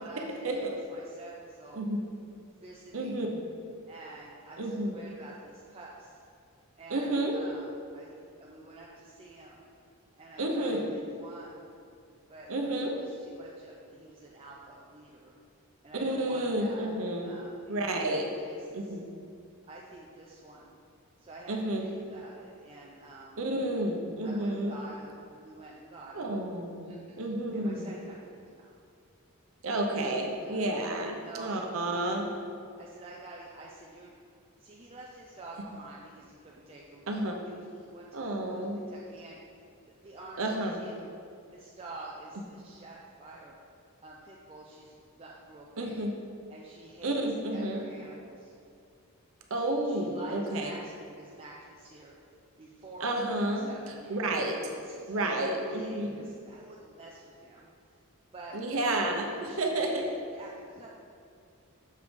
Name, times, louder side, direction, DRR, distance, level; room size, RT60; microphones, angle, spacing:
voice 1, 0.0-1.9 2.6-3.3 3.9-6.2 6.8-9.6 10.2-11.7 12.3-15.3 15.8-18.1 18.4-19.0 19.7-20.7 21.2-23.4 24.2-26.3 26.8-28.7 30.3-30.6 31.0-32.1 32.8-34.1 34.6-37.0 37.4-38.1 38.4-39.4 40.0-41.1 41.5-43.6 44.0-46.0 46.5-47.2 47.5-48.5 49.5-52.1 52.6-54.3 54.7-57.7 58.3-58.6 59.3-60.9, right 2 dB, 25° right, -3 dB, 0.4 m, -48 dB
voice 2, 2.9-3.3 4.6-4.9 6.9-7.4 10.4-10.9 12.5-13.0 16.0-17.3 17.7-18.3 18.7-19.1 21.5-21.9 23.4-24.7 26.1-27.9 29.6-32.2 37.1-37.4 38.1-38.8 40.4-40.8 45.8-46.1 47.0-47.8 49.5-50.7 53.0-54.6 55.1-56.3 58.5-59.9, right 1 dB, 65° right, 2 dB, 0.8 m, -31 dB
6.6 x 5.1 x 3.3 m, 2.4 s
head